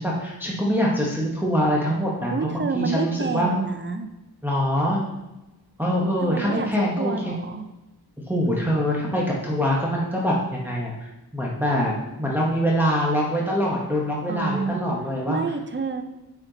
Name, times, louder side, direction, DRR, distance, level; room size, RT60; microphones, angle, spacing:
voice 1, 0.0-3.5 4.4-5.0 5.8-7.3 8.3-11.9 12.2-15.4, equal, 5° right, -4 dB, 1.0 m, -24 dB
voice 2, 2.3-4.1 6.2-7.7 14.3-14.8 15.3-16.0, right 4 dB, 30° right, 7 dB, 0.5 m, -28 dB
8.6 x 4.3 x 3.9 m, 1.0 s
wide cardioid pair, 135°, 39 cm